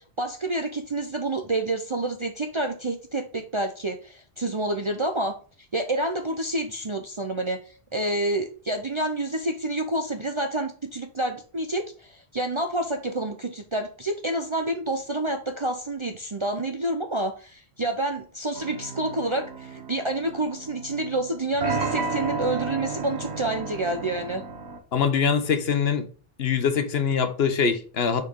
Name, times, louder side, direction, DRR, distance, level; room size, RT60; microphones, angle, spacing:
voice 1, 0.0-5.4 5.7-24.4, right 1 dB, 35° right, 0.7 m, -28 dB
sound 1, 18.6-24.8, right 4 dB, 85° right, 1.3 m, -33 dB
voice 2, 24.9-26.1 26.4-28.2, left 6 dB, 70° left, 1.2 m, -23 dB
6.4 x 4.6 x 3.7 m
omnidirectional pair, 1.1 m